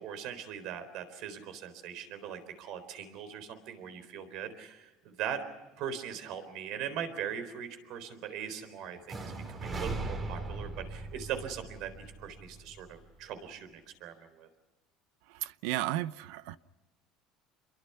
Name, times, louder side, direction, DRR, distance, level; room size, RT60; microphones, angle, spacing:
voice 1, 0.0-5.4 5.8-14.5, right 8 dB, 60° right, 10 dB, 3.9 m, -40 dB
sound 1, 9.1-13.0, right 3 dB, 25° right, 3.0 m, -39 dB
voice 2, 15.3-16.6, right 15 dB, 80° right, 15 dB, 0.8 m, -34 dB
28.5 x 23.0 x 5.8 m, 1.1 s
cardioid pair, 160°, 0 cm